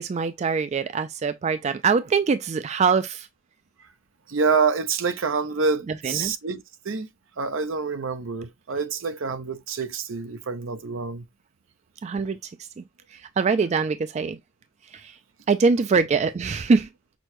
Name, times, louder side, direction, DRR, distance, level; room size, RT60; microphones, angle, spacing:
voice 1, 0.0-3.3 5.9-6.3 12.0-12.4 12.8-12.9 13.1-14.4 14.9-15.2 15.5-16.9, right 5 dB, 35° right, 0.3 m, -23 dB
voice 2, 4.3-7.1 7.4-11.2, right 5 dB, 80° right, 0.7 m, -27 dB
6.0 x 2.2 x 2.9 m
head